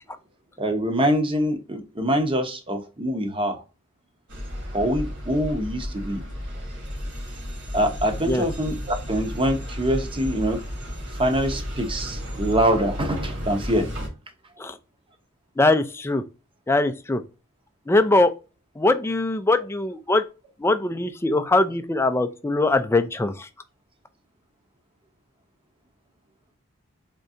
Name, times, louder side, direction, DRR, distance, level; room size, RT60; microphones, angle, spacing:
voice 1, 0.6-3.6 4.7-6.2 7.7-10.6 11.2-13.9, equal, 25° right, 0.8 m, -24 dB
sound 1, 4.3-14.1, equal, 55° right, 1.8 m, -33 dB
voice 2, 15.6-16.2 16.7-17.2 17.9-18.3 18.8-20.2 20.6-23.5, left 2 dB, 10° left, 0.4 m, -21 dB
3.7 x 3.2 x 2.6 m
head